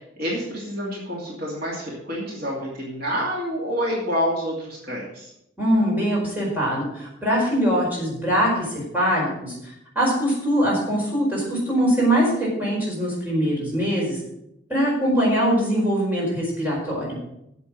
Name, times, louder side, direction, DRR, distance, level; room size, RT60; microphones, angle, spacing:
voice 1, 0.2-5.3, equal, 50° right, -4 dB, 2.6 m, -28 dB
voice 2, 5.6-8.7 8.9-14.2 14.7-17.2, equal, 10° right, -5 dB, 4.7 m, -22 dB
8.4 x 7.6 x 7.4 m, 0.81 s
head